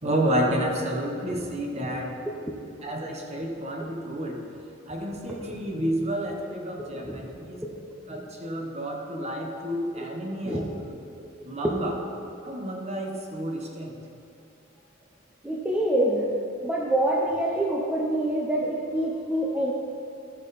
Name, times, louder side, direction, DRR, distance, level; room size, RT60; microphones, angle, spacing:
voice 1, 0.0-2.1 2.8-4.4 4.9-7.6 8.1-10.9 11.4-12.0 12.4-14.0, right 1 dB, 35° right, 1 dB, 1.2 m, -30 dB
voice 2, 6.8-7.2 7.6-7.7 9.9-10.1 10.4-10.6 11.6-11.7 15.4-16.3 16.6-19.7, right 1 dB, 5° right, -3 dB, 0.8 m, -26 dB
14.0 x 6.3 x 4.2 m, 2.5 s
head